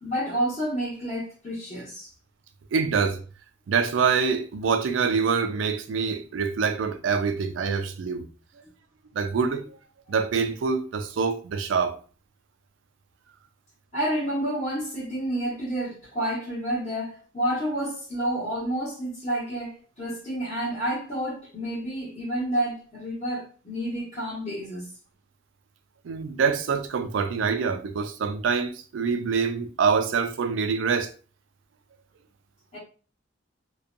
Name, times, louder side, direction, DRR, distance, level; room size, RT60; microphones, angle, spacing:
voice 1, 0.0-2.1 13.9-24.9 32.7-32.8, right 1 dB, 35° left, 1.1 m, -29 dB
voice 2, 2.7-3.2 3.7-8.2 9.1-9.7 10.1-12.0 26.0-31.1, right 5 dB, 75° right, 0.4 m, -25 dB
2.6 x 2.2 x 2.5 m
head